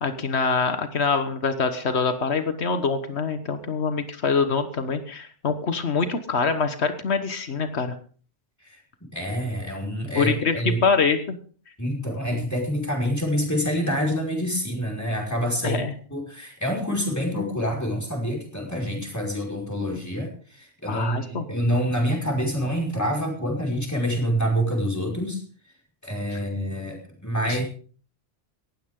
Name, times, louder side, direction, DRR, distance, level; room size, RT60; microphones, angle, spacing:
voice 1, 0.0-7.9 10.1-11.4 12.3-12.4 15.6-15.9 20.9-21.4 26.3-26.4 27.4-27.6, left 5 dB, 90° left, 9 dB, 1.6 m, -25 dB
voice 2, 9.1-10.8 11.8-15.8 16.1-25.4 26.0-27.6, equal, 15° left, 0 dB, 5.3 m, -27 dB
19.0 x 15.5 x 3.8 m, 0.43 s
omnidirectional pair, 1.1 m